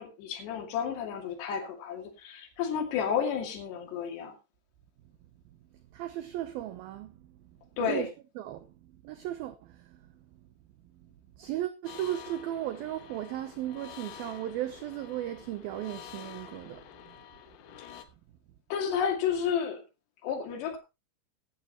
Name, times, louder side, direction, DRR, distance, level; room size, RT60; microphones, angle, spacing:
voice 1, 0.0-4.3 7.8-8.1 17.8-17.9 18.7-19.8 20.2-20.8, left 7 dB, 70° left, 4.4 m, -31 dB
voice 2, 5.9-7.4 7.8-8.7 9.0-10.1 10.9-11.1 11.4-17.2, right 13 dB, 75° right, 2.2 m, -36 dB
sound 1, 11.9-18.1, left 10 dB, 85° left, 3.6 m, -48 dB
15.5 x 11.5 x 3.0 m
omnidirectional pair, 5.2 m